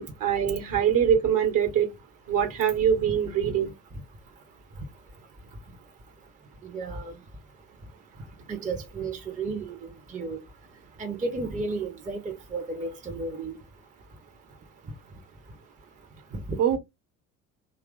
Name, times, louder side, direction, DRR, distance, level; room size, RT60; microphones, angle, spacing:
voice 1, 0.0-1.9 2.3-3.7 16.6-16.8, right 8 dB, 50° right, 1.3 m, -23 dB
voice 2, 6.6-7.1 8.5-9.8 10.1-10.4 11.0-13.6, right 3 dB, 20° right, 0.8 m, -33 dB
2.9 x 2.4 x 3.6 m
figure-of-eight pair, 60°, 43 cm